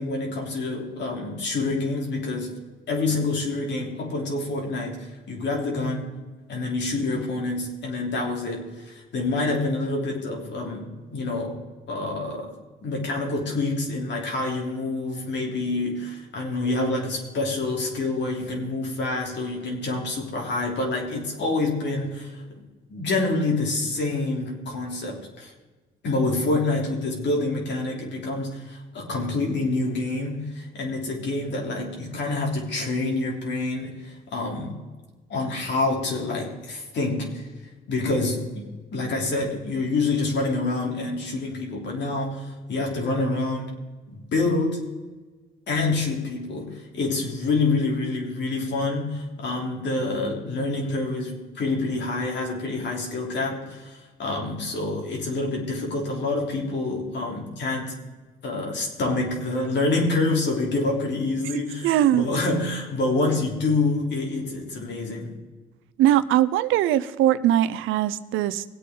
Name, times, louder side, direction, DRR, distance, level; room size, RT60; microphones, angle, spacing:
voice 1, 0.0-2.5 2.9-6.1 6.5-11.6 11.9-12.5 12.8-22.4 22.9-25.5 26.0-34.8 35.3-37.5 37.9-43.8 44.1-44.8 45.7-57.9 58.4-65.3, left 2 dB, 65° left, 0 dB, 3.3 m, -27 dB
voice 2, 61.8-62.3 66.0-68.6, right 12 dB, 90° right, 15 dB, 0.6 m, -21 dB
19.0 x 8.5 x 3.8 m, 1.3 s
cardioid pair, 90°, 20 cm